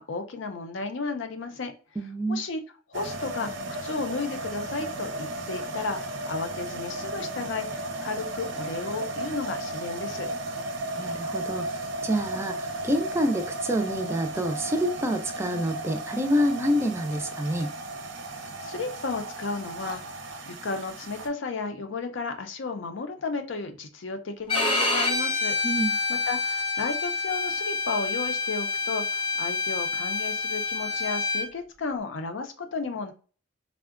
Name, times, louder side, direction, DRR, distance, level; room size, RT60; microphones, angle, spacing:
voice 1, 0.0-1.7 2.3-2.6 2.9-3.5 3.8-10.3 18.2-25.6 26.1-33.1, left 4 dB, 85° left, 0.5 m, -33 dB
voice 2, 2.0-2.4 11.0-17.7 25.6-26.0, equal, 15° right, 0.3 m, -27 dB
sound 1, 2.9-21.3, right 2 dB, 75° right, 0.6 m, -35 dB
Bowed string instrument, 24.5-31.5, left 3 dB, 25° left, 0.7 m, -27 dB
3.6 x 2.1 x 2.4 m
head